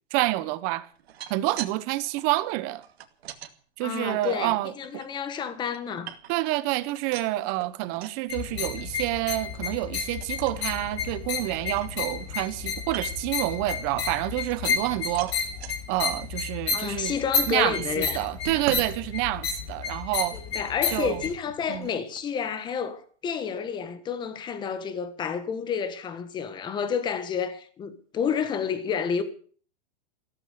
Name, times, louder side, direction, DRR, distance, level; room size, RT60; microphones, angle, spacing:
voice 1, 0.1-0.9 1.3-2.8 3.8-4.7 6.3-15.4 15.9-17.1 17.5-20.4 20.9-21.2 21.7-21.9, right 17 dB, 25° right, 1.0 m, -28 dB
sound 1, 0.9-1.8 2.0-3.5 4.1-5.1 5.5-6.5 6.8-8.2 8.6-8.8 9.2-9.3 9.6-9.9 10.2-10.6 11.1-11.2 11.4-12.3 12.8-13.3 13.9-14.9 15.2-15.7 16.3-16.4 16.8-16.9, right 11 dB, 60° right, 2.4 m, -43 dB
voice 2, 3.8-6.1 16.7-18.3 20.3-29.2, left 7 dB, 15° left, 1.5 m, -30 dB
sound 2, 8.3-21.3, left 6 dB, 60° left, 5.8 m, -31 dB
sound 3, 18.4-22.3, right 10 dB, 45° right, 2.4 m, -43 dB
15.5 x 14.0 x 6.6 m
supercardioid pair, 170°, 35 cm